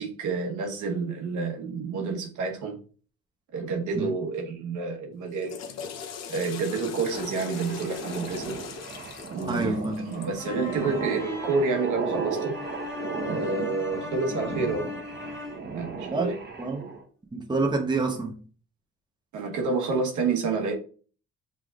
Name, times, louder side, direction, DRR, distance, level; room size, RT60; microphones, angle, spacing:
voice 1, 0.0-2.8 3.5-5.6 6.3-8.6 9.3-12.6 13.3-14.9 15.7-16.4 19.3-20.7, right 4 dB, 80° right, 1.2 m, -29 dB
Water / Toilet flush, 5.2-10.5, left 7 dB, 60° left, 0.7 m, -40 dB
sound 1, 7.1-17.0, right 4 dB, 35° right, 1.0 m, -36 dB
voice 2, 9.5-10.1 16.1-16.3 16.6-16.9 17.3-18.4, right 3 dB, 15° right, 0.9 m, -27 dB
sound 2, 10.4-15.7, left 3 dB, 10° left, 1.7 m, -38 dB
5.6 x 3.4 x 2.4 m
cardioid pair, 90°, 30 cm